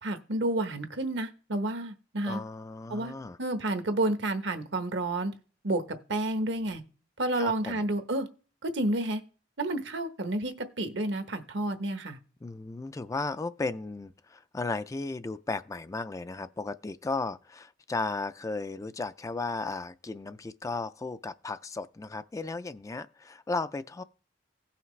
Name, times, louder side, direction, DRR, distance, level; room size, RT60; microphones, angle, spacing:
voice 1, 0.0-2.4 2.9-5.3 5.6-5.8 6.1-6.8 7.2-8.3 8.6-9.2 9.6-12.2, right 1 dB, 70° right, 1.0 m, -30 dB
voice 2, 2.3-3.4 7.3-7.8 12.4-24.0, left 3 dB, 20° left, 0.3 m, -35 dB
17.0 x 5.7 x 3.2 m
head